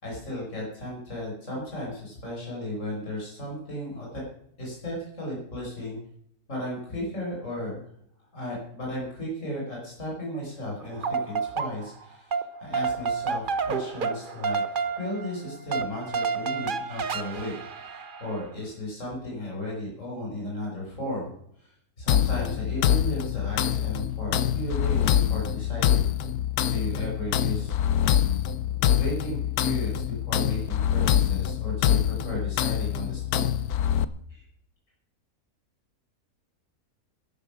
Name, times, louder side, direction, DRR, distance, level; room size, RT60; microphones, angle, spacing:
voice 1, 0.0-4.2 4.6-6.0 6.5-7.8 8.3-14.6 15.0-21.3 21.6-21.7 22.0-26.0 26.6-27.8 29.0-33.5 34.3-34.4, left 1 dB, 50° left, -3 dB, 5.9 m, -35 dB
sound 1, 10.8-12.0 12.3-18.4, right 5 dB, 40° right, 0.9 m, -30 dB
sound 2, 22.1-34.0, left 10 dB, 75° left, 1.2 m, -25 dB
13.0 x 11.0 x 6.1 m, 0.71 s
omnidirectional pair, 1.6 m